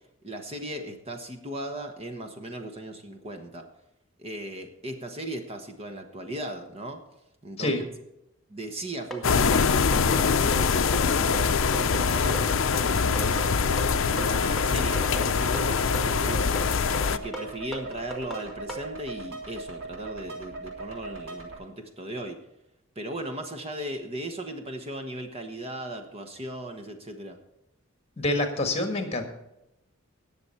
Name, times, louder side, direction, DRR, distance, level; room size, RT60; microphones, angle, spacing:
voice 1, 0.2-3.7 4.2-7.0 7.4-7.7 8.5-13.6 14.1-16.7 17.1-22.4 22.9-27.4, right 1 dB, 30° right, 5 dB, 1.1 m, -37 dB
sound 1, 9.1-18.9, right 2 dB, ahead, 1.8 m, -37 dB
sound 2, 9.2-17.2, left 5 dB, 65° left, 0.5 m, -24 dB
sound 3, 10.9-21.5, right 3 dB, 75° right, 3.3 m, -39 dB
voice 2, 28.2-29.2, left 2 dB, 30° left, 5 dB, 1.6 m, -26 dB
19.0 x 7.0 x 4.3 m, 0.87 s
head